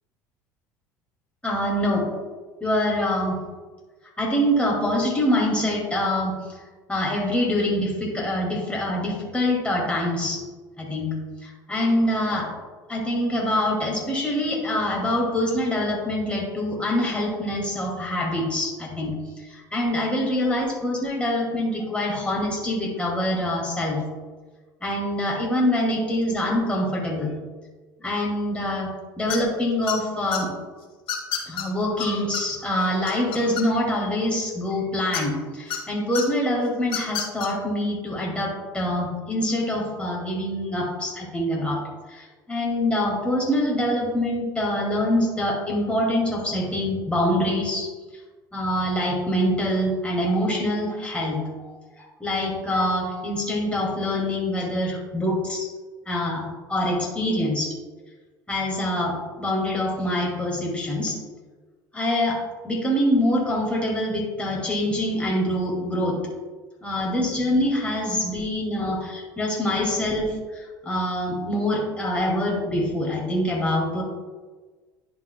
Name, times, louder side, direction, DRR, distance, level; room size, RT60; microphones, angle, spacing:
voice 1, 1.4-2.1 2.6-3.4 4.2-6.4 6.9-10.5 10.8-12.6 12.9-24.0 24.8-27.3 28.0-30.5 31.5-41.8 42.1-47.9 48.5-55.7 56.0-57.8 58.5-61.2 61.9-66.3 66.8-74.0, left 1 dB, 10° left, -3 dB, 2.3 m, -25 dB
Mouse squeak, 29.3-29.6 29.9-30.4 31.1-31.6 32.0-32.1 32.3-32.4 32.8-33.9 35.1-35.8 36.1-36.2 36.8-37.5, left 9 dB, 55° left, 1.3 m, -29 dB
10.5 x 5.8 x 2.2 m, 1.4 s
hypercardioid pair, 65°, 11 cm